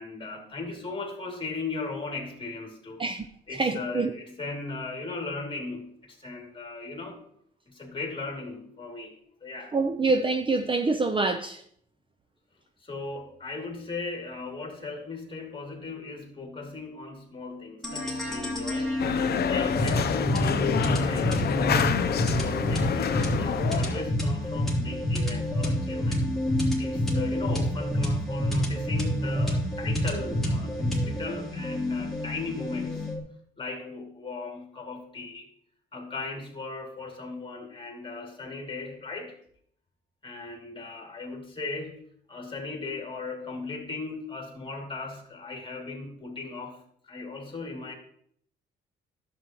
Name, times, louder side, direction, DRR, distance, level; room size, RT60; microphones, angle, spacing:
voice 1, 0.0-3.0 3.5-7.2 7.7-9.1 9.4-9.7 12.8-19.2 19.5-26.3 26.8-33.1 33.6-35.5 35.9-39.4 40.2-42.0 42.3-47.9, left 3 dB, 25° left, 2.5 m, -37 dB
voice 2, 3.6-4.1 9.7-11.6, right 3 dB, 25° right, 0.6 m, -25 dB
sound 1, 17.8-33.2, equal, ahead, 3.0 m, -28 dB
sound 2, 19.0-24.1, left 8 dB, 55° left, 0.6 m, -27 dB
11.0 x 7.8 x 3.0 m
cardioid pair, 90°, 20 cm